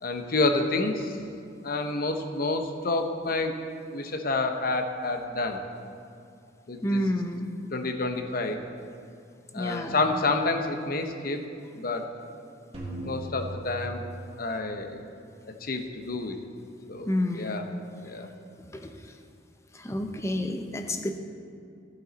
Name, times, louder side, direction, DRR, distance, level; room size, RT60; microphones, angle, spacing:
voice 1, 0.0-1.2 1.6-3.5 3.9-5.6 6.7-7.0 7.7-8.6 9.5-11.4 11.8-12.1 12.9-14.0 14.4-15.0 15.6-16.4 16.9-17.7 18.0-18.3, left 3 dB, 50° left, 5 dB, 0.8 m, -29 dB
voice 2, 6.8-7.5 9.5-9.9 17.1-17.6 18.7-18.9 19.7-21.1, left 1 dB, 15° left, 6 dB, 0.6 m, -29 dB
sound 1, 12.7-14.9, right 1 dB, 35° right, 1.9 m, -38 dB
14.0 x 8.5 x 4.1 m, 2.5 s
head